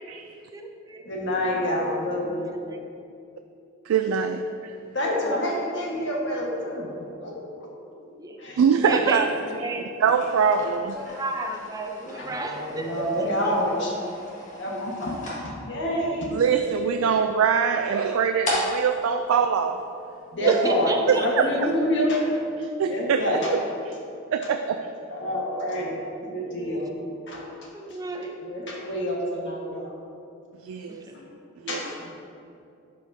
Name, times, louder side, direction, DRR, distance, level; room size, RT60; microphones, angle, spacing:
voice 1, 1.1-2.5 4.9-7.3 8.4-8.6 11.0-11.2 12.1-14.1 14.6-16.3 20.3-20.9 21.2-22.3 22.8-23.5 25.1-26.9 27.3-27.4 28.4-29.9 31.1-31.2 31.7-32.1, equal, 60° left, -3 dB, 1.5 m, -27 dB
voice 2, 3.9-4.4 8.6-9.3 10.0-11.0 16.3-19.8 20.4-20.6 21.1-21.5 22.6-23.9 24.3-24.9 30.6-31.1 31.6-31.8, right 6 dB, 85° right, 6 dB, 0.3 m, -23 dB
voice 3, 8.8-9.9 10.6-13.5 20.4-21.3 26.3-26.8 27.7-28.4 28.6-28.8 30.9-31.2, right 2 dB, 20° right, 3 dB, 0.5 m, -33 dB
sound 1, 10.0-20.4, left 1 dB, 35° left, 1.7 m, -37 dB
12.0 x 5.0 x 2.7 m, 2.6 s
head